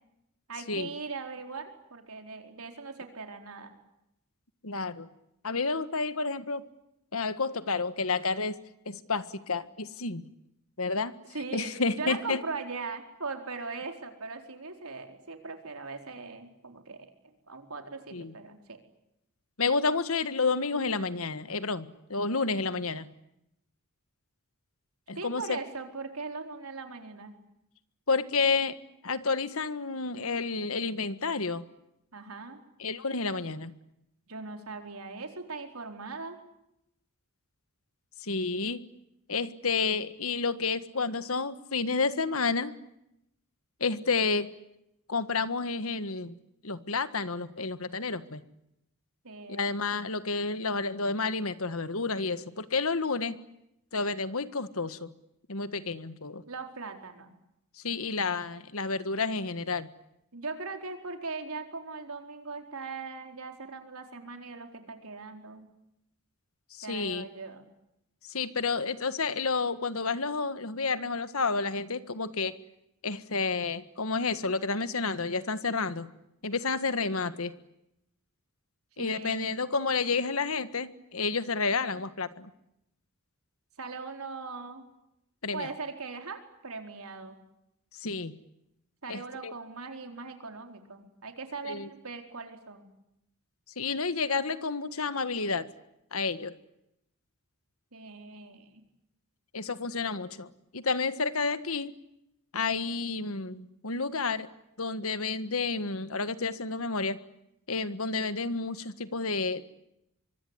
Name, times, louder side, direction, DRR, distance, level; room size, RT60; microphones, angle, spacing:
voice 1, 0.5-3.7 11.3-17.1 17.5-18.8 25.1-27.3 32.1-32.6 34.3-36.4 49.2-49.8 56.5-57.3 60.3-65.7 66.8-67.7 79.0-79.5 83.8-84.8 85.5-87.4 89.0-92.9 97.9-98.8, right 4 dB, 75° right, 5 dB, 4.4 m, -40 dB
voice 2, 4.6-5.1 5.4-6.6 7.1-10.3 10.8-11.2 11.5-12.4 18.1-18.3 19.6-23.1 25.1-25.6 28.1-28.8 29.0-31.7 32.8-33.7 38.2-38.8 39.3-42.7 43.8-44.5 45.1-46.4 46.6-48.4 49.5-53.4 53.9-55.1 55.5-56.4 57.8-59.9 66.7-67.3 68.3-72.6 73.0-76.1 76.4-77.5 79.0-82.5 85.4-85.7 87.9-88.3 89.1-89.5 91.6-91.9 93.8-95.7 96.1-96.5 99.5-101.9 102.5-104.5 104.8-107.2 107.7-109.6, left 4 dB, 70° left, 13 dB, 1.6 m, -30 dB
25.0 x 24.5 x 9.8 m, 0.83 s
head